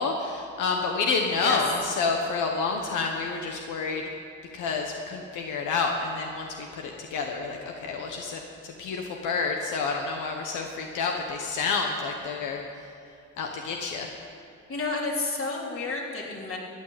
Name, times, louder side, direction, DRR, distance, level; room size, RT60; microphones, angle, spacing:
voice 1, 0.0-4.0 4.5-12.6 13.4-14.1, left 4 dB, 90° left, 2 dB, 1.3 m, -29 dB
voice 2, 14.7-16.6, left 3 dB, 45° left, -2 dB, 3.5 m, -30 dB
14.5 x 9.3 x 8.7 m, 2.4 s
cardioid pair, 90°, 30 cm